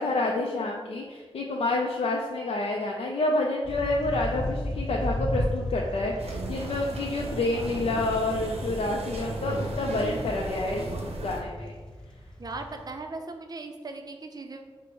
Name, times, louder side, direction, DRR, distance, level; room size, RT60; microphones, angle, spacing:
voice 1, 0.0-10.8 11.2-11.7, left 2 dB, 70° left, -1 dB, 0.4 m, -28 dB
sound 1, 3.6-12.9, left 1 dB, 5° left, 0.6 m, -35 dB
sound 2, 6.2-11.4, right 2 dB, 85° right, 0.7 m, -35 dB
voice 2, 12.4-14.6, right 3 dB, 40° right, 5 dB, 0.4 m, -38 dB
4.6 x 2.0 x 4.5 m, 1.4 s
wide cardioid pair, 100°, 10 cm